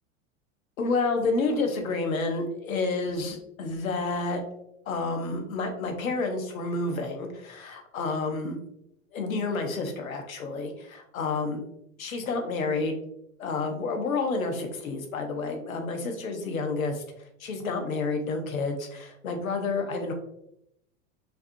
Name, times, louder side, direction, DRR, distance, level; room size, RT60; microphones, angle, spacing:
voice 1, 0.8-4.4 4.9-8.6 9.1-11.6 12.0-12.9 13.4-17.0 17.4-20.1, left 3 dB, 90° left, 4 dB, 1.0 m, -29 dB
5.7 x 2.7 x 2.6 m, 0.77 s
hypercardioid pair, 100°, 40 cm